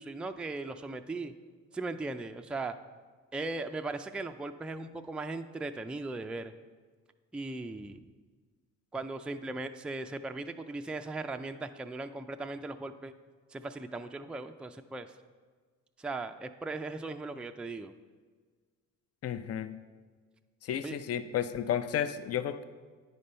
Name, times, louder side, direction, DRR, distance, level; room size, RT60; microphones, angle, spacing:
voice 1, 0.0-1.3 1.7-2.8 3.3-6.5 7.3-8.0 8.9-13.1 13.5-15.1 16.0-17.9 20.8-21.0, right 3 dB, 5° right, 7 dB, 0.3 m, -38 dB
voice 2, 19.2-19.7 20.6-22.6, left 9 dB, 55° left, 11 dB, 0.5 m, -32 dB
9.5 x 5.2 x 4.3 m, 1.5 s
cardioid pair, 90°, 30 cm